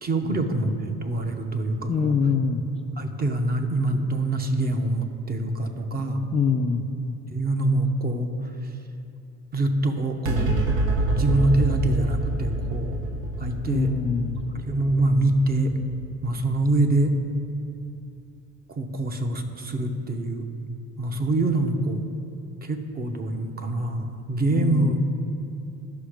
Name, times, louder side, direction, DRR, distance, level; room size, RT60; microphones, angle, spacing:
voice 1, 0.0-2.1 3.0-6.3 7.3-8.3 9.5-10.6 11.1-13.0 13.4-13.9 14.6-15.8 16.2-17.2 18.7-20.5 21.0-22.0 22.6-25.1, right 2 dB, 30° right, 6 dB, 0.8 m, -25 dB
voice 2, 1.9-2.6 6.3-6.9 13.7-14.4 24.5-24.9, left 5 dB, 20° left, 3 dB, 0.4 m, -24 dB
sound 1, 10.2-16.9, right 1 dB, 80° right, 1.3 m, -27 dB
11.5 x 5.7 x 5.0 m, 2.7 s
supercardioid pair, 100°, 34 cm